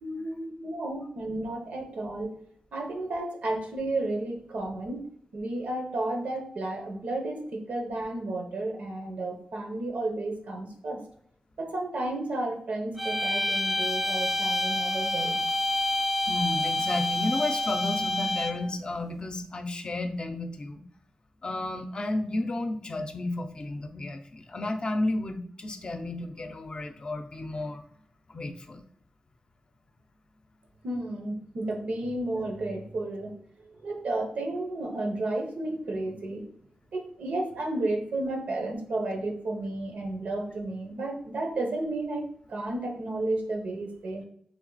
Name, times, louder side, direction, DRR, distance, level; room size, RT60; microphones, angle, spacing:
voice 1, 0.0-2.4 2.7-11.0 11.6-15.4 30.8-33.3 33.6-36.5 36.9-44.2, right 2 dB, 85° right, 3 dB, 0.8 m, -32 dB
sound 1, 13.0-18.7, left 1 dB, 10° right, 0.4 m, -28 dB
voice 2, 16.3-20.8 21.4-27.8 28.3-28.8, left 2 dB, 40° left, 6 dB, 0.5 m, -32 dB
3.5 x 2.9 x 3.9 m, 0.66 s
wide cardioid pair, 85°, 2 cm